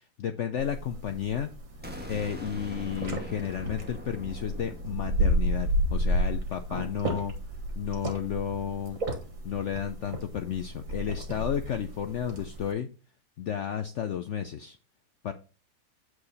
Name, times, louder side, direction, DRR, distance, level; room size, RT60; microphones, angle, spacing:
voice 1, 0.0-1.5 2.1-7.3 7.8-9.0 9.4-12.9 13.4-14.8 15.2-15.3, left 9 dB, 85° left, 8 dB, 0.6 m, -32 dB
sound 1, 0.6-12.7, equal, 45° right, 2.2 m, -32 dB
sound 2, 1.8-7.6, equal, 5° right, 1.1 m, -44 dB
8.6 x 4.8 x 4.0 m, 0.35 s
omnidirectional pair, 2.0 m